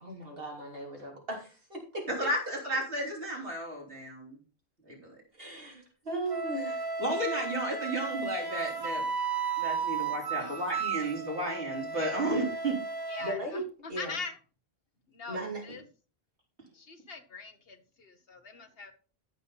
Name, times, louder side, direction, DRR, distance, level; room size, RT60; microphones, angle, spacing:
voice 1, 0.0-2.1 5.3-6.9 13.2-13.6 13.9-14.2 15.3-15.8, right 1 dB, 60° right, 0 dB, 3.3 m, -37 dB
voice 2, 2.1-4.4 4.9-5.2 7.0-9.0 9.6-12.8, right 1 dB, 85° right, -3 dB, 4.4 m, -33 dB
Wind instrument woodwind instrument, 6.3-13.4, right 5 dB, 25° right, 0.8 m, -34 dB
voice 3, 10.3-10.8 13.1-14.4 15.1-15.8 16.7-18.9, left 4 dB, 65° left, 7 dB, 1.5 m, -43 dB
14.0 x 5.6 x 4.1 m, 0.37 s
omnidirectional pair, 1.1 m